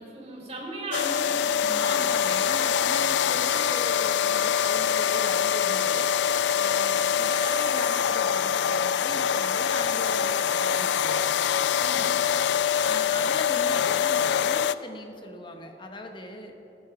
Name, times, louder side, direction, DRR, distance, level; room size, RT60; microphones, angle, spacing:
voice 1, 0.0-2.3 11.8-12.1, right 2 dB, 35° right, -4 dB, 3.3 m, -37 dB
sound 1, 0.9-14.7, left 8 dB, 80° left, 0.3 m, -24 dB
voice 2, 1.7-6.1 6.6-11.2 12.8-16.5, left 1 dB, 30° left, 4 dB, 1.1 m, -39 dB
15.0 x 8.9 x 5.0 m, 3.0 s
head